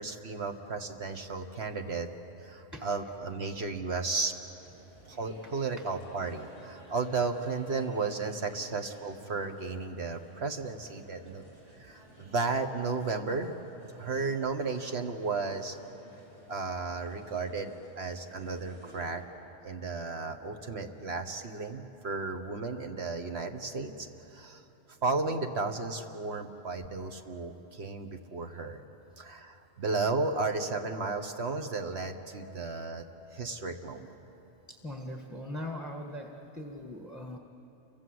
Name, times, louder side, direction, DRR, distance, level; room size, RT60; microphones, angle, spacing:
voice 1, 0.0-2.1 2.4-4.3 5.1-11.4 11.8-13.6 14.0-15.8 16.5-19.2 19.6-24.6 25.0-28.8 29.2-33.0 33.3-34.1, right 4 dB, 60° right, 5 dB, 1.5 m, -34 dB
sound 1, 4.5-19.1, right 1 dB, 80° right, 5.5 m, -56 dB
voice 2, 34.7-36.3 36.5-37.4, left 1 dB, ahead, 2 dB, 1.5 m, -40 dB
29.5 x 24.0 x 7.8 m, 3.0 s
omnidirectional pair, 1.2 m